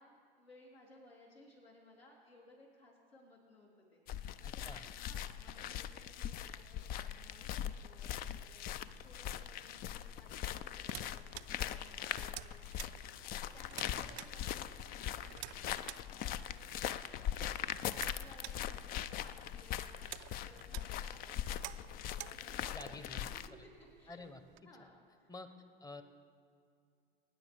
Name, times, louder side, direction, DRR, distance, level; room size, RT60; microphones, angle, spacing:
voice 1, 0.0-11.2 11.6-16.7 17.8-24.3 24.6-25.3, left 2 dB, 85° left, -5 dB, 3.7 m, -61 dB
sound 1, 4.1-23.5, left 10 dB, 30° left, 0.4 m, -41 dB
voice 2, 4.4-4.9 13.8-14.2 22.7-23.3 24.1-24.4 25.3-25.5 25.8-26.0, left 2 dB, 10° left, 9 dB, 0.9 m, -49 dB
sound 2, 10.3-24.6, right 18 dB, 40° right, 0.4 m, -53 dB
23.0 x 9.9 x 3.5 m, 2.3 s
figure-of-eight pair, 80°, 29 cm